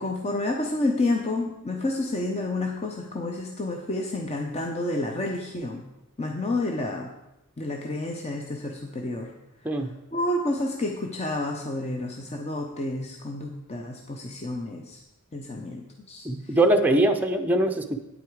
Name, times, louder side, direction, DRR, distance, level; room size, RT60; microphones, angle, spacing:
voice 1, 0.0-5.8 6.2-7.1 7.6-9.3 9.7-15.0 15.3-16.6, left 2 dB, 30° left, 2 dB, 0.7 m, -30 dB
voice 2, 9.6-9.9 16.2-18.0, right 1 dB, 10° right, 4 dB, 0.6 m, -22 dB
9.2 x 8.3 x 4.7 m, 0.94 s
head